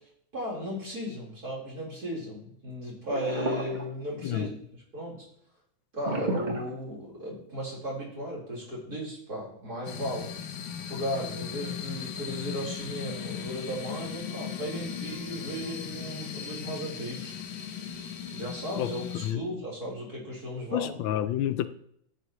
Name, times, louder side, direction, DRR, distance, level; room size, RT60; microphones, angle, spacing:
voice 1, 0.3-5.2 5.9-10.3 10.9-17.3 18.3-21.0, equal, 50° right, 4.7 m, -36 dB
sound 1, 3.0-4.4 6.0-7.4, right 1 dB, 25° right, 1.5 m, -32 dB
sound 2, 9.9-19.3, left 8 dB, 65° left, 1.4 m, -38 dB
voice 2, 20.7-21.7, left 12 dB, 85° left, 1.4 m, -28 dB
13.0 x 8.1 x 3.1 m
omnidirectional pair, 2.1 m